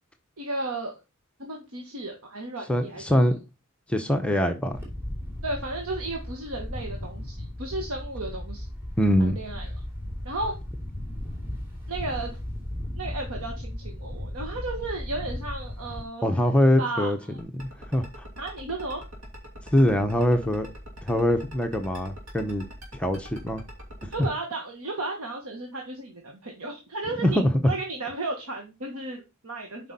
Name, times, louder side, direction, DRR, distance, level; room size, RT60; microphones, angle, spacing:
voice 1, 0.4-1.0 1.4-3.1 5.4-8.7 9.2-9.7 10.2-10.5 11.9-12.3 13.0-16.4 16.8-17.1 18.4-19.0 24.1-27.4 27.7-29.9, right 2 dB, 90° right, 1.4 m, -34 dB
voice 2, 2.7-3.3 3.9-4.8 9.0-9.4 16.2-17.2 17.5-18.1 19.7-20.7 21.0-22.7 22.9-23.6 27.2-27.5, equal, 5° left, 0.7 m, -23 dB
Wind, 4.7-16.0, left 1 dB, 10° right, 2.7 m, -36 dB
sound 1, 17.4-24.3, equal, 70° right, 2.6 m, -43 dB
7.8 x 5.3 x 4.1 m
head